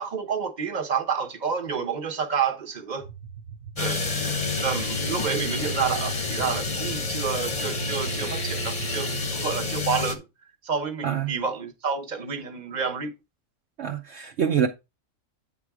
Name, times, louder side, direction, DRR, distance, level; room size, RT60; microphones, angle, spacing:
voice 1, 0.0-3.1 3.8-4.0 4.6-10.2 10.6-13.1, right 6 dB, 35° right, 1.1 m, -29 dB
sound 1, 3.0-8.9, right 7 dB, 80° right, 1.2 m, -42 dB
sound 2, 3.7-10.1, left 3 dB, 30° left, 0.9 m, -29 dB
voice 2, 13.8-14.7, right 8 dB, 60° right, 1.0 m, -25 dB
9.0 x 3.7 x 4.7 m
omnidirectional pair, 1.4 m